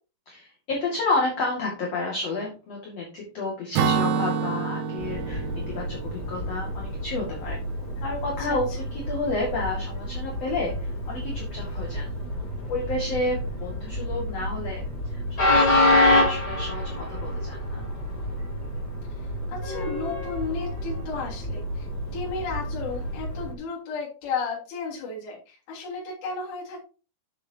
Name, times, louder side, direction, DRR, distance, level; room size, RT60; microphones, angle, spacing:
voice 1, 0.3-7.6 8.0-12.1 12.7-14.8 15.1-17.9, left 2 dB, 45° left, -2 dB, 2.5 m, -31 dB
Acoustic guitar / Strum, 3.8-7.4, right 6 dB, 85° right, 3.0 m, -28 dB
Train, 5.0-23.5, left 1 dB, 25° left, 3.1 m, -28 dB
voice 2, 19.5-21.9 22.1-26.8, left 4 dB, 70° left, -6 dB, 5.4 m, -33 dB
10.0 x 7.8 x 2.8 m, 0.33 s
omnidirectional pair, 5.1 m